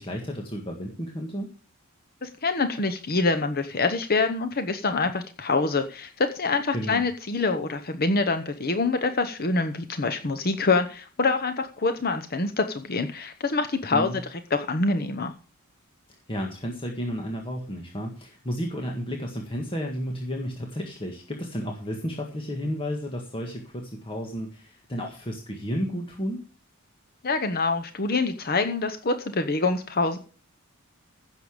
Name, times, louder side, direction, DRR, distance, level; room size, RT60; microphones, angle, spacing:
voice 1, 0.0-1.5 6.7-7.0 13.9-14.2 16.3-26.4, equal, 25° left, 1 dB, 1.7 m, -32 dB
voice 2, 2.2-14.2 14.5-15.3 27.2-30.2, left 3 dB, 45° left, 8 dB, 0.9 m, -25 dB
15.5 x 7.0 x 5.0 m, 0.37 s
head